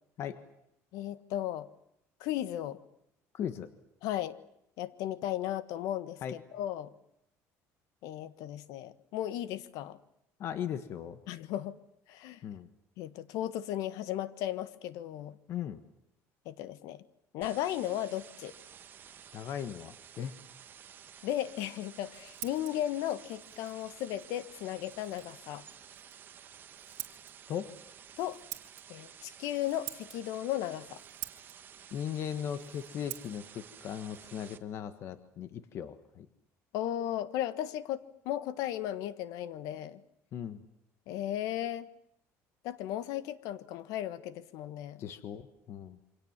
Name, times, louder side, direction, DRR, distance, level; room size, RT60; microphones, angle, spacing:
voice 1, 0.9-1.7 2.2-2.8 4.0-4.4 4.8-6.9 8.0-10.0 11.3-11.7 12.1-12.4 13.0-15.4 16.4-17.0 17.3-18.5 21.2-25.6 28.2-28.4 28.9-31.0 36.7-40.0 41.1-41.9 42.6-45.0, left 12 dB, 75° left, 14 dB, 1.4 m, -35 dB
voice 2, 3.3-3.7 6.2-6.4 10.4-11.2 12.4-12.7 15.5-15.8 19.3-20.3 27.5-27.7 31.9-36.3 40.3-40.6 45.0-46.0, left 9 dB, 45° left, 11 dB, 1.4 m, -38 dB
sound 1, 17.4-34.6, right 8 dB, 35° right, 1.6 m, -53 dB
Scissors, 21.8-35.4, right 17 dB, 70° right, 2.2 m, -50 dB
27.5 x 24.5 x 7.4 m, 0.79 s
cardioid pair, 155°, 6 cm